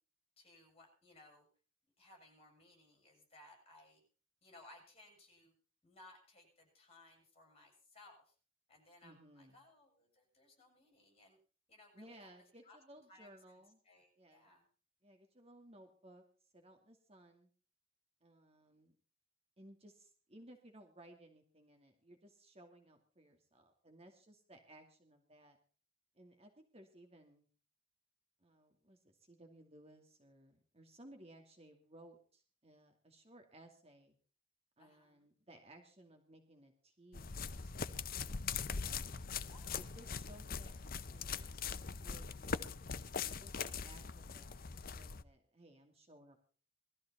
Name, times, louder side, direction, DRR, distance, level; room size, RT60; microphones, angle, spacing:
voice 1, 0.4-1.5 2.0-4.0 4.4-5.5 5.8-8.3 8.7-11.4 11.7-12.3 12.6-12.8 13.1-14.7 34.8-35.2 39.5-39.8, left 2 dB, 30° left, 2 dB, 7.6 m, -62 dB
voice 2, 9.0-9.6 11.9-13.8 14.2-14.5 15.0-16.2 16.5-17.5 18.2-19.0 19.6-25.6 26.1-27.5 28.4-34.2 34.8-37.9 38.8-39.3 39.8-41.7 42.0-42.8 43.2-46.5, right 1 dB, 30° right, 4 dB, 2.5 m, -60 dB
sound 1, 37.1-45.2, left 5 dB, 45° left, 0.8 m, -42 dB
20.5 x 14.0 x 4.3 m, 0.39 s
head